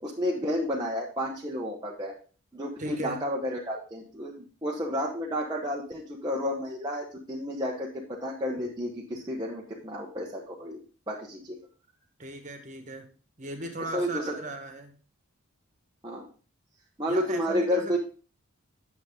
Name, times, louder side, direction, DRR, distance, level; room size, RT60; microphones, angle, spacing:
voice 1, 0.0-2.1 2.5-10.8 11.1-11.6 13.9-14.3 16.0-16.3 17.0-18.0, equal, 20° right, -3 dB, 1.0 m, -31 dB
voice 2, 2.8-3.2 12.2-13.1 13.4-14.9 17.1-18.0, right 2 dB, 35° right, 5 dB, 1.5 m, -37 dB
9.3 x 7.1 x 3.7 m, 0.37 s
head